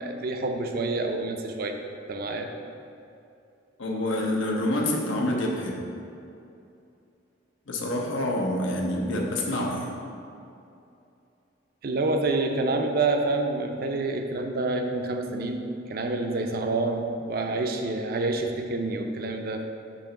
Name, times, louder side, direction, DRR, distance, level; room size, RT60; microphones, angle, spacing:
voice 1, 0.0-1.8 2.1-2.5 11.8-15.6 15.9-19.6, right 2 dB, 50° right, 4 dB, 0.5 m, -27 dB
voice 2, 3.8-5.8 7.7-9.9, left 1 dB, 80° left, -1 dB, 1.0 m, -27 dB
7.0 x 3.0 x 5.7 m, 2.6 s
head